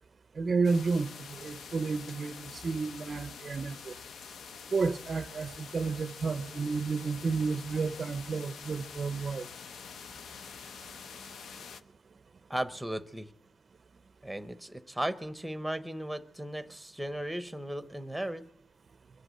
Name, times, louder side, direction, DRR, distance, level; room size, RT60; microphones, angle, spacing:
voice 1, 0.4-3.9 4.7-9.5, right 4 dB, 40° right, 0.5 m, -31 dB
sound 1, 0.6-11.8, left 6 dB, 80° left, 0.7 m, -46 dB
voice 2, 12.5-13.3 14.2-18.5, right 1 dB, ahead, 0.7 m, -36 dB
23.0 x 8.1 x 7.5 m
wide cardioid pair, 165°, 0 cm